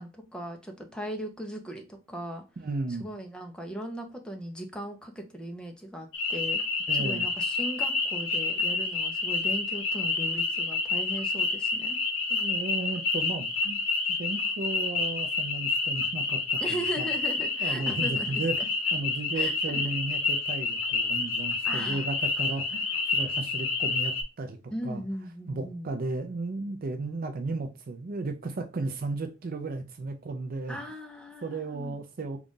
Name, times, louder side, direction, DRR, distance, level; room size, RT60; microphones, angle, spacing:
voice 1, 0.0-1.8 2.1-2.4 2.9-6.6 6.9-12.0 16.6-18.7 19.3-19.9 21.6-22.1 24.7-25.9 30.7-32.0, equal, 5° left, 0.7 m, -38 dB
voice 2, 2.6-3.1 6.9-7.2 12.3-13.8 14.1-17.1 17.6-18.6 18.9-22.9 23.1-25.0 25.5-30.8 31.4-32.4, right 3 dB, 45° right, 0.4 m, -34 dB
sound 1, 6.1-24.2, left 3 dB, 70° left, 1.0 m, -29 dB
3.8 x 2.4 x 3.6 m
head